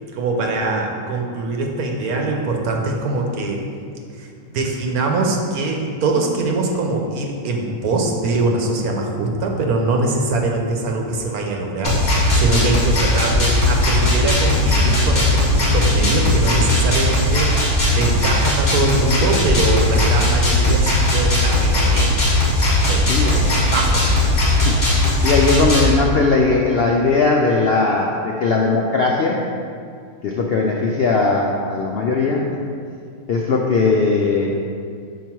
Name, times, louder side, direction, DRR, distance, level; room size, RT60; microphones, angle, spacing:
voice 1, 0.1-3.6 4.2-22.5 22.9-24.3, right 2 dB, 85° right, 1 dB, 1.3 m, -23 dB
sound 1, 11.8-25.9, left 1 dB, 30° left, 1.3 m, -17 dB
voice 2, 25.2-29.4 30.2-32.4 33.3-34.5, left 4 dB, 70° left, -1 dB, 0.5 m, -18 dB
5.8 x 4.6 x 4.5 m, 2.3 s
omnidirectional pair, 1.5 m